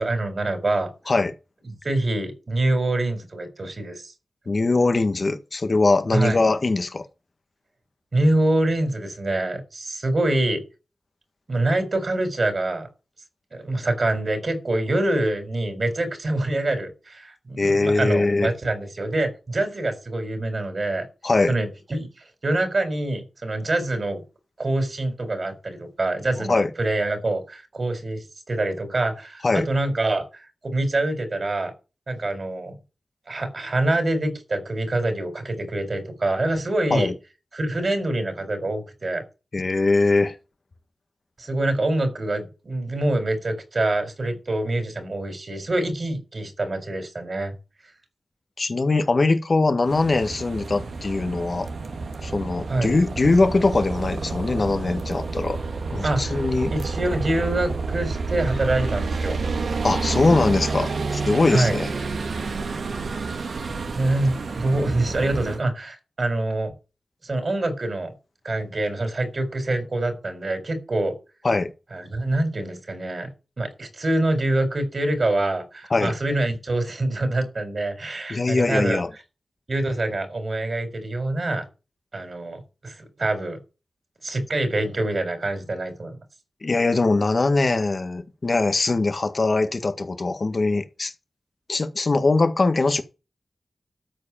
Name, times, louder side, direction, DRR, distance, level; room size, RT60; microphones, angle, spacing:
voice 1, 0.0-0.9 1.8-4.1 6.1-6.4 8.1-10.6 11.5-12.9 13.5-21.0 21.5-22.1 22.4-24.2 24.6-31.7 32.1-32.8 33.3-37.1 37.5-39.2 41.4-47.5 52.7-52.9 56.0-56.2 56.7-59.4 61.5-61.8 63.9-66.7 67.2-68.1 68.4-71.1 71.9-73.3 73.6-79.0 79.7-81.7 82.1-83.6 84.2-86.2, right 2 dB, 55° right, 4.5 m, -25 dB
voice 2, 4.5-7.1 17.6-18.5 21.2-21.5 26.5-26.7 29.4-29.6 36.9-37.1 39.5-40.3 48.6-51.7 52.2-55.6 55.9-56.7 59.8-61.9 71.4-71.7 75.9-76.1 78.3-79.1 86.6-91.1 91.7-93.0, left 3 dB, 50° left, 1.6 m, -21 dB
sound 1, 49.9-65.6, right 4 dB, 85° right, 1.7 m, -29 dB
13.0 x 4.9 x 8.9 m
cardioid pair, 60°, 0 cm